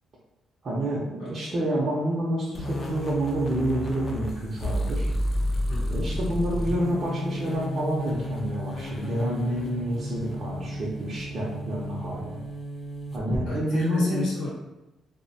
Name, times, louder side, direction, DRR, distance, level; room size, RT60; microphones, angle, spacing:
voice 1, 0.6-5.1 5.9-12.4 13.1-14.2, right 1 dB, 50° right, -7 dB, 0.6 m, -28 dB
sound 1, 2.5-13.4, equal, 35° left, 0.5 m, -31 dB
voice 2, 5.7-6.0 13.5-14.5, left 2 dB, 85° left, -5 dB, 0.8 m, -32 dB
2.6 x 2.1 x 2.6 m, 0.97 s
cardioid pair, 90°, 0 cm